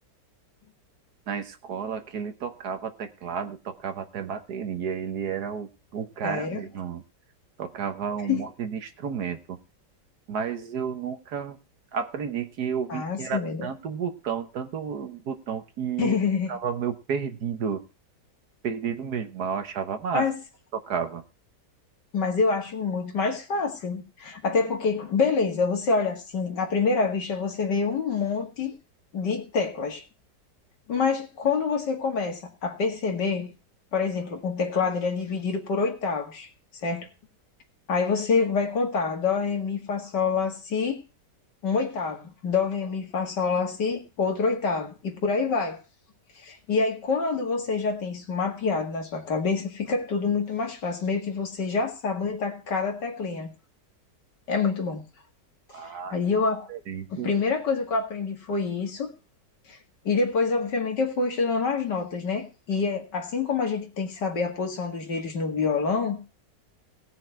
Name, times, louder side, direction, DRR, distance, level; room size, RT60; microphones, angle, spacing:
voice 1, 1.3-7.0 7.6-9.6 10.3-11.6 11.9-16.2 16.5-17.8 18.6-20.3 20.7-21.2 55.7-56.1 56.7-57.3, right 7 dB, 65° right, 1.6 m, -31 dB
voice 2, 6.2-6.6 8.3-8.4 12.9-13.7 16.0-16.6 20.1-20.3 22.1-28.7 29.1-30.0 30.9-33.5 33.9-36.5 36.8-37.1 37.9-41.0 41.6-45.8 46.4-53.5 54.5-55.0 56.1-56.7 57.1-59.1 59.7-59.8 60.0-66.2, left 4 dB, 80° left, 2.6 m, -26 dB
18.0 x 6.4 x 4.5 m
omnidirectional pair, 1.8 m